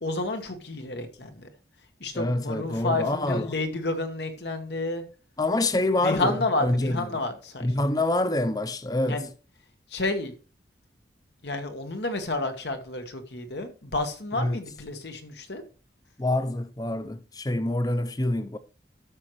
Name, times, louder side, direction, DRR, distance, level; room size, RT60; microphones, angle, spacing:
voice 1, 0.0-1.5 2.0-5.0 6.0-7.7 9.1-9.3 9.9-10.3 11.4-15.6, left 2 dB, 75° left, 1.3 m, -30 dB
voice 2, 2.1-3.5 5.4-7.1 7.6-9.3 14.3-14.6 16.2-18.6, left 1 dB, 20° left, 0.6 m, -26 dB
13.0 x 6.2 x 3.1 m
head